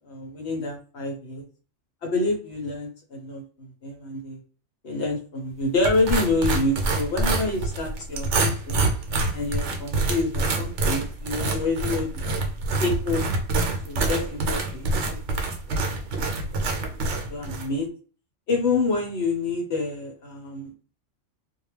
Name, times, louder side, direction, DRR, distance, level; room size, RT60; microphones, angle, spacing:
voice 1, 0.0-1.4 2.0-4.4 4.8-8.9 9.3-12.1 12.8-13.2 13.8-14.9 15.7-15.8 16.5-16.6 17.3-17.9 18.5-20.7, left 3 dB, 60° left, 1 dB, 1.1 m, -27 dB
sound 1, 5.8-17.7, right 2 dB, 70° right, 0.9 m, -26 dB
2.4 x 2.3 x 3.1 m, 0.38 s
omnidirectional pair, 1.3 m